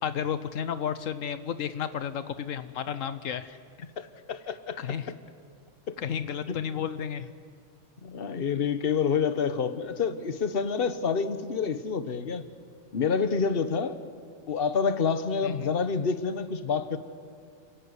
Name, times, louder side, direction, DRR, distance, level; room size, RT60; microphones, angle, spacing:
voice 1, 0.0-3.6 4.8-5.1 6.0-7.3 15.4-15.8, left 8 dB, 80° left, 12 dB, 1.2 m, -32 dB
voice 2, 4.0-4.8 5.9-6.0 6.5-6.6 8.0-12.4 12.9-14.0 14.5-17.0, left 6 dB, 50° left, 11 dB, 1.3 m, -28 dB
29.0 x 16.0 x 9.7 m, 2.2 s
omnidirectional pair, 1.3 m